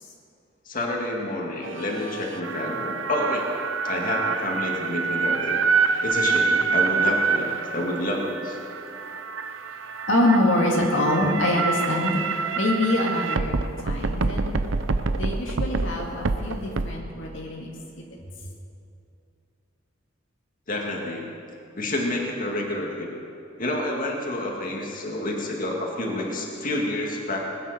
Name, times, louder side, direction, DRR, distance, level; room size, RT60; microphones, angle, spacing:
voice 1, 0.7-3.5 3.8-5.6 6.0-8.6 20.7-21.2 21.7-23.1 23.6-27.4, left 1 dB, 45° left, -1 dB, 2.2 m, -28 dB
sound 1, 1.6-16.9, right 4 dB, 80° right, 0.7 m, -26 dB
voice 2, 10.1-12.2 12.6-13.5 13.8-14.6 15.1-17.7 18.0-18.1, left 1 dB, 70° left, -1 dB, 2.0 m, -24 dB
20.0 x 9.9 x 6.7 m, 2.7 s
head